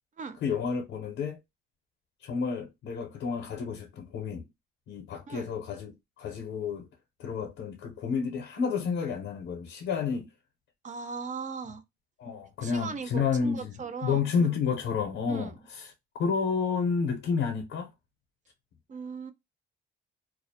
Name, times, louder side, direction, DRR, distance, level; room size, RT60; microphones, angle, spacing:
voice 1, 0.4-1.4 2.2-4.4 4.9-6.9 7.2-10.3 12.2-13.7 14.0-15.9 16.2-17.9, left 6 dB, 80° left, 0.7 m, -30 dB
voice 2, 10.8-11.8 12.6-14.5 15.3-15.5 18.9-19.3, right 5 dB, 40° right, 0.5 m, -38 dB
2.3 x 2.0 x 2.7 m
cardioid pair, 90°, 20 cm